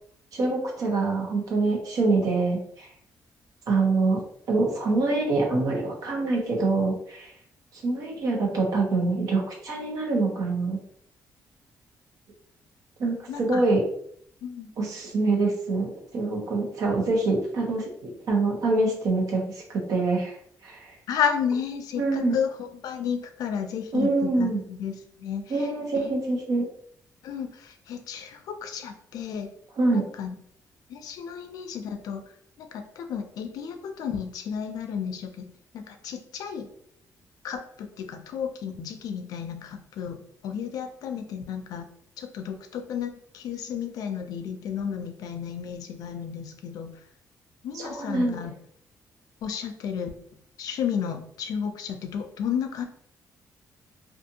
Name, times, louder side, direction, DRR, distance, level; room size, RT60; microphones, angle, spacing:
voice 1, 0.3-2.9 3.7-7.3 7.7-10.8 13.0-13.8 14.8-20.4 20.6-20.9 22.0-22.3 23.9-24.6 25.5-26.7 29.8-30.1 47.7-48.4, right 3 dB, 70° right, 0 dB, 0.9 m, -25 dB
voice 2, 13.3-13.6 14.4-14.7 21.1-24.9 25.2-25.7 26.0-26.1 27.2-29.5 29.9-30.4 30.9-32.2 32.6-36.7 37.4-40.2 40.4-41.9 42.2-47.0 47.6-48.5 49.4-52.9, left 7 dB, 80° left, 7 dB, 0.4 m, -32 dB
2.6 x 2.4 x 2.7 m, 0.66 s
cardioid pair, 155°, 6 cm